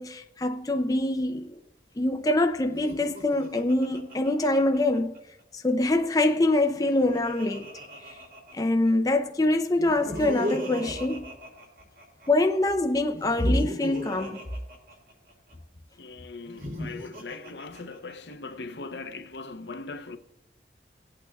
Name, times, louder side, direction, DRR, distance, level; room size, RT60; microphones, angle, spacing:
voice 1, 0.0-1.6 2.0-5.1 5.5-7.7 8.5-11.3 12.3-14.4, left 2 dB, 20° left, 0.5 m, -24 dB
Laughter, 2.7-5.2 6.5-8.9 9.8-12.3 13.1-15.5 16.4-18.3, equal, 50° right, 2.8 m, -38 dB
voice 2, 16.0-20.2, left 3 dB, 75° left, 0.7 m, -40 dB
18.5 x 8.5 x 2.3 m
head